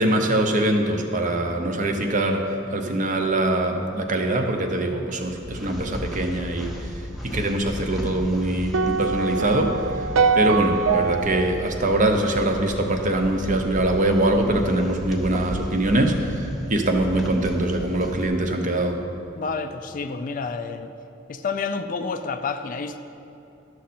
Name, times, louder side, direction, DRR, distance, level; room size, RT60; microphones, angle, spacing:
voice 1, 0.0-2.4 2.7-6.7 7.2-10.1 10.3-19.0, right 1 dB, 40° right, 4 dB, 0.7 m, -23 dB
sound 1, 5.3-18.3, left 1 dB, ahead, 0.8 m, -35 dB
sound 2, 8.7-13.0, right 5 dB, 80° right, 0.4 m, -24 dB
voice 2, 19.4-20.9 21.3-23.0, left 4 dB, 40° left, 9 dB, 0.3 m, -29 dB
11.5 x 6.3 x 4.3 m, 2.9 s
head